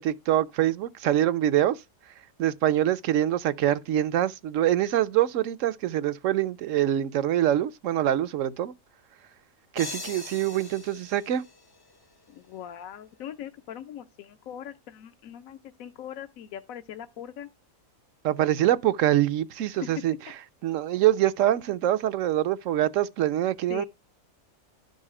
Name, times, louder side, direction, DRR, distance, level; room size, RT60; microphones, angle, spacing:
voice 1, 0.0-1.8 2.4-8.7 9.7-11.4 18.2-20.1 20.6-23.8, right 12 dB, 70° right, 1.0 m, -24 dB
sound 1, 9.8-12.4, left 3 dB, 35° left, 0.3 m, -41 dB
voice 2, 12.3-17.5 19.7-20.1 23.7-23.8, left 10 dB, 75° left, 1.1 m, -40 dB
11.5 x 5.5 x 4.8 m
omnidirectional pair, 1.5 m